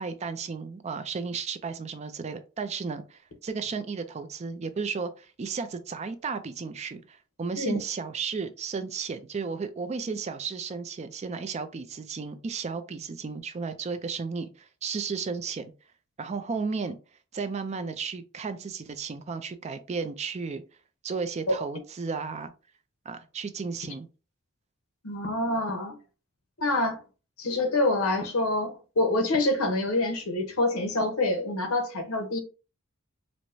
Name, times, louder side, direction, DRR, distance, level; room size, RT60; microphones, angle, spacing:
voice 1, 0.0-15.7 16.2-17.0 17.3-20.6 21.0-22.5 23.1-24.1, right 5 dB, 30° right, 0.4 m, -34 dB
voice 2, 25.0-25.9 26.6-27.0 27.4-32.4, left 2 dB, 80° left, 0.9 m, -26 dB
4.5 x 2.1 x 2.6 m
head